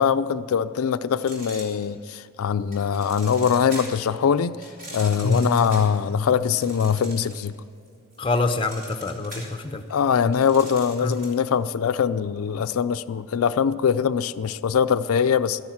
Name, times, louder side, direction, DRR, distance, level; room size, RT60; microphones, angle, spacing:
voice 1, 0.0-4.6 4.9-7.5 9.9-15.6, left 7 dB, 80° left, 11 dB, 0.4 m, -22 dB
sound 1, 1.2-2.2 2.7-4.1 4.6-7.5 7.9-11.5, right 1 dB, 40° right, 3.9 m, -41 dB
voice 2, 5.2-5.7 8.2-9.8 11.0-11.2, left 2 dB, 25° left, 8 dB, 0.6 m, -25 dB
13.0 x 10.5 x 7.2 m, 2.5 s
head